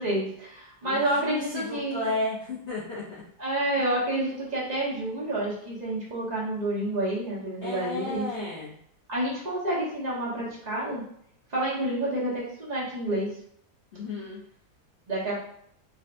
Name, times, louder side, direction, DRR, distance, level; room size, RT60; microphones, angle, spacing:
voice 1, 0.0-2.1 3.4-8.5 9.1-11.0 11.5-13.3 15.1-15.4, right 1 dB, 35° right, -6 dB, 0.6 m, -29 dB
voice 2, 0.8-3.0 7.6-8.8 13.9-14.4, left 2 dB, 80° left, -8 dB, 0.6 m, -33 dB
4.0 x 2.2 x 2.5 m, 0.68 s
omnidirectional pair, 2.1 m